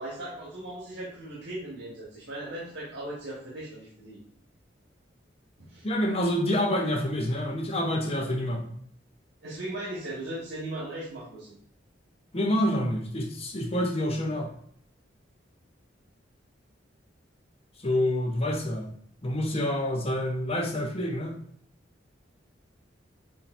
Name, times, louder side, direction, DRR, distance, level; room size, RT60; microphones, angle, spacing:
voice 1, 0.0-4.2 5.6-5.9 9.4-11.6, right 1 dB, 90° right, -5 dB, 1.5 m, -38 dB
voice 2, 5.8-8.7 12.3-14.5 17.8-18.9 19.2-21.4, left 1 dB, 35° left, 2 dB, 0.8 m, -27 dB
7.1 x 2.8 x 2.6 m, 0.63 s
head